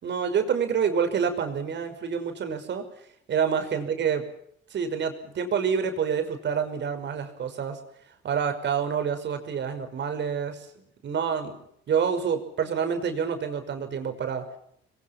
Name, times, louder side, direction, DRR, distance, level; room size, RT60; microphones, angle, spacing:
voice 1, 0.0-2.9 3.3-4.2 4.7-7.8 8.2-10.7 11.0-11.6 11.9-14.5, right 7 dB, 65° right, 7 dB, 5.7 m, -27 dB
29.0 x 22.0 x 5.9 m, 0.70 s
cardioid pair, 90°, 20 cm